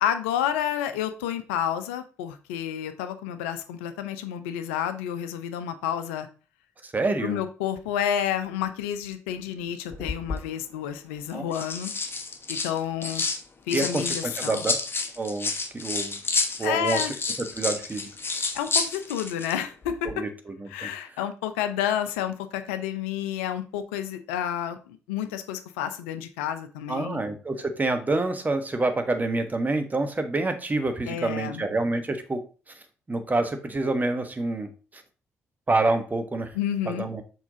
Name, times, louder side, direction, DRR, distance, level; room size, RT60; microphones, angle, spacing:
voice 1, 0.0-6.3 7.2-11.9 12.5-13.2 13.7-14.6 16.6-17.2 18.5-20.1 20.7-27.2 31.1-31.6 36.5-37.1, left 9 dB, 70° left, 10 dB, 0.5 m, -30 dB
voice 2, 6.8-7.4 11.3-11.4 13.7-14.8 15.2-16.2 16.6-17.0 17.5-18.1 20.0-20.3 20.6-20.9 26.9-32.4 33.1-35.0 35.7-36.5 36.9-37.2, right 2 dB, 20° right, 7 dB, 1.2 m, -27 dB
sound 1, 9.9-10.4 11.3-13.4 13.7-19.6 19.8-20.1, left 4 dB, 30° left, 1.3 m, -30 dB
6.1 x 4.5 x 3.8 m, 0.35 s
figure-of-eight pair, 40°, 7 cm